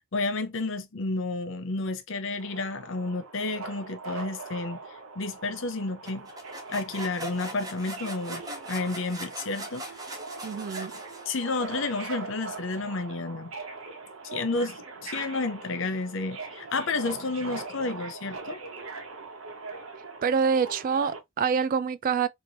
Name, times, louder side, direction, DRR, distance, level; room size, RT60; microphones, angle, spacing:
voice 1, 0.0-4.8 5.2-6.3 6.7-9.8 11.3-13.5 14.2-18.6, left 3 dB, 65° left, 0.7 m, -31 dB
Subway metro underground, 2.4-21.2, right 3 dB, 75° right, 0.9 m, -41 dB
mp titla pinfu tengu, 6.1-11.7, right 1 dB, 20° right, 0.8 m, -41 dB
voice 2, 10.4-10.9 20.2-22.3, right 6 dB, 45° right, 0.3 m, -26 dB
3.0 x 2.6 x 2.9 m
head